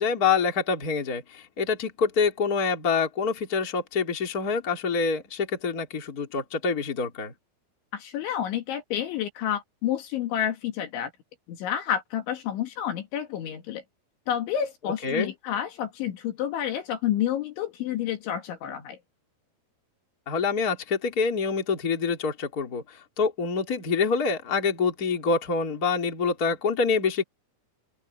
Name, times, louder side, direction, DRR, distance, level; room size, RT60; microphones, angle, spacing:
voice 1, 0.0-7.3 15.0-15.3 20.3-27.2, left 5 dB, 20° left, 2.8 m, -26 dB
voice 2, 7.9-11.1 11.5-13.8 14.3-19.0, left 10 dB, 70° left, 4.2 m, -29 dB
open air
omnidirectional pair, 5.9 m